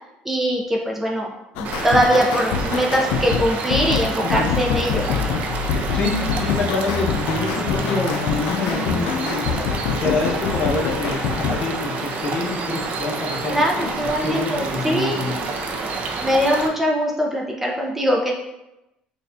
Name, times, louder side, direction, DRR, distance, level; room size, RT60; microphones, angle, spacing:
voice 1, 0.2-1.3 1.6-5.1 13.5-15.2 16.2-18.3, equal, 10° right, -1 dB, 0.6 m, -21 dB
sound 1, 1.6-11.7, left 6 dB, 90° left, 0.3 m, -25 dB
sound 2, 1.6-16.7, right 3 dB, 55° right, 0.5 m, -28 dB
voice 2, 4.2-4.6 5.9-9.5 10.0-13.9 14.2-16.0, left 3 dB, 50° left, -1 dB, 1.0 m, -26 dB
6.3 x 2.4 x 2.6 m, 0.93 s
cardioid pair, 125°, 3 cm